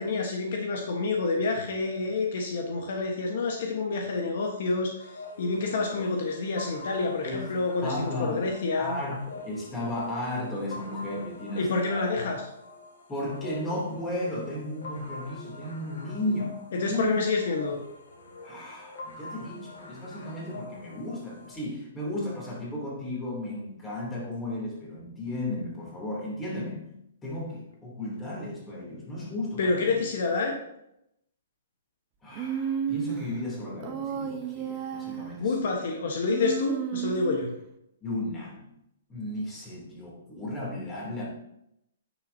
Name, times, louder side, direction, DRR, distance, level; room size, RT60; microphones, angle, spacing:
voice 1, 0.0-5.1 5.4-9.0 11.6-12.4 16.7-17.8 29.6-30.6 35.4-37.5, left 3 dB, 60° left, 2 dB, 1.2 m, -28 dB
sound 1, 5.0-21.5, left 2 dB, 80° left, 2.6 m, -45 dB
voice 2, 7.8-8.5 8.8-12.2 13.1-16.5 16.8-17.2 18.4-26.8 27.2-30.0 32.2-35.5 38.0-38.7 39.1-41.3, left 1 dB, 15° left, -4 dB, 2.9 m, -34 dB
Human voice, 32.3-33.3 33.8-35.4 36.3-37.5, right 7 dB, 30° right, 0.8 m, -32 dB
9.5 x 6.4 x 2.8 m, 0.80 s
hypercardioid pair, 145°, 0 cm